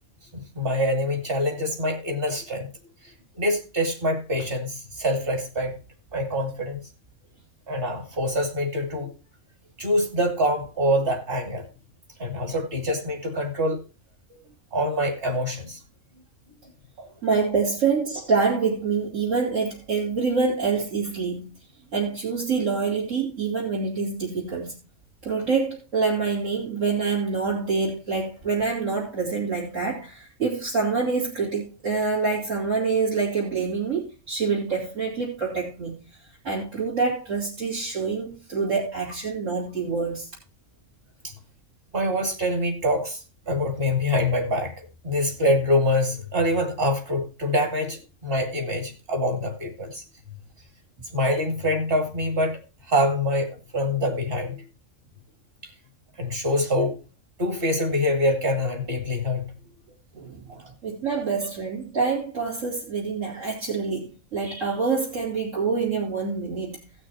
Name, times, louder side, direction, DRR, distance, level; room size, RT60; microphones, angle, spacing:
voice 1, 0.3-2.7 3.0-5.8 6.1-6.8 7.7-9.1 9.8-11.6 12.2-13.8 14.7-15.8 17.0-17.1 41.2-41.3 41.9-50.0 51.1-54.6 55.6-55.7 56.2-57.0 57.4-59.6 60.5-60.6, left 1 dB, 45° right, 2.4 m, -25 dB
voice 2, 17.2-21.5 21.9-24.8 25.2-36.0 36.4-40.3 60.1-66.8, right 4 dB, 70° right, 3.2 m, -26 dB
18.0 x 6.2 x 3.0 m
omnidirectional pair, 1.4 m